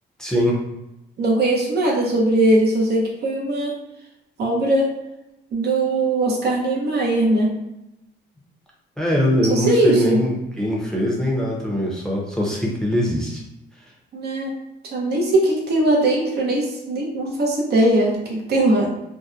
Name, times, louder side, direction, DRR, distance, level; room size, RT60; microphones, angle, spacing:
voice 1, 0.2-0.6 9.0-13.4, equal, 5° left, -4 dB, 0.6 m, -22 dB
voice 2, 1.2-3.7 4.4-4.9 5.5-7.5 9.5-10.2 14.1-14.5 14.9-18.9, right 1 dB, 55° right, -1 dB, 0.6 m, -20 dB
2.7 x 2.1 x 2.4 m, 0.91 s
cardioid pair, 90°, 20 cm